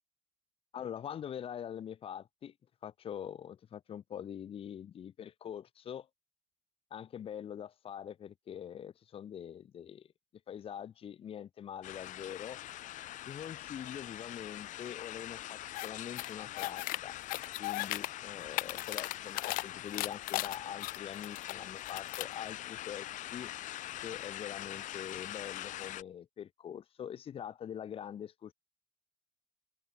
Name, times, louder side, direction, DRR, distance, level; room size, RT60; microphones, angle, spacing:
voice 1, 0.7-2.5 2.8-6.1 6.9-10.1 10.5-12.6 13.3-17.2 17.6-23.5 24.0-28.5, left 9 dB, 40° left, 3.2 m, -44 dB
sound 1, 11.8-26.0, left 14 dB, 60° left, 3.0 m, -44 dB
sound 2, 15.7-15.9 16.2-17.0 17.3-18.1 18.4-19.6 19.9-21.5 21.8-22.3, left 21 dB, 85° left, 0.8 m, -36 dB
cardioid pair, 145°, 14 cm